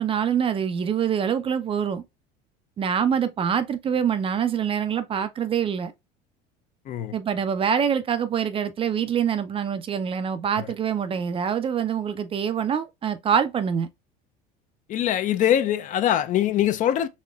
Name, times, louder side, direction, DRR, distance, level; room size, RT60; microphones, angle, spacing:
voice 1, 0.0-2.0 2.8-5.9 7.1-13.9, right 8 dB, 25° right, 0.4 m, -25 dB
voice 2, 14.9-17.1, left 11 dB, 40° left, 0.4 m, -23 dB
4.2 x 2.9 x 2.3 m
supercardioid pair, 120°, 20 cm